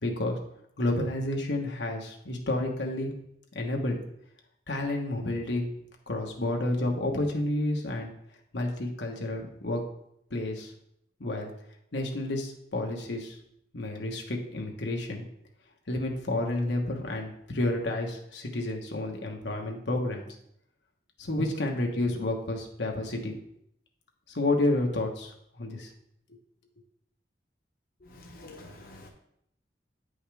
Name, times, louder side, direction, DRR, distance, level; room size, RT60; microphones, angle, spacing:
voice 1, 0.0-0.4 0.8-3.1 3.5-4.0 4.7-5.7 6.1-8.1 8.5-9.8 10.3-10.7 11.2-11.5 11.9-13.4 13.7-15.2 15.9-20.2 21.2-23.3 24.3-25.3 25.6-25.9 26.3-26.4, left 1 dB, 90° left, 1.2 m, -30 dB
voice 2, 28.1-29.1, left 2 dB, 55° left, 1.0 m, -47 dB
9.2 x 5.5 x 3.5 m
head